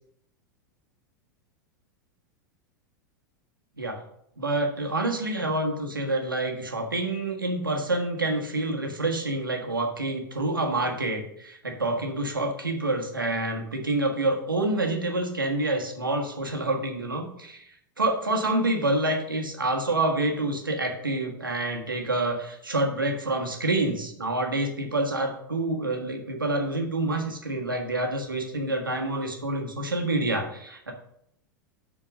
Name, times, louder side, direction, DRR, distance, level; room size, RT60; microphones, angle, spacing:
voice 1, 4.4-17.7 18.0-30.9, right 2 dB, 85° right, 2 dB, 1.5 m, -27 dB
7.3 x 4.5 x 6.2 m, 0.72 s
figure-of-eight pair, 90°, 11 cm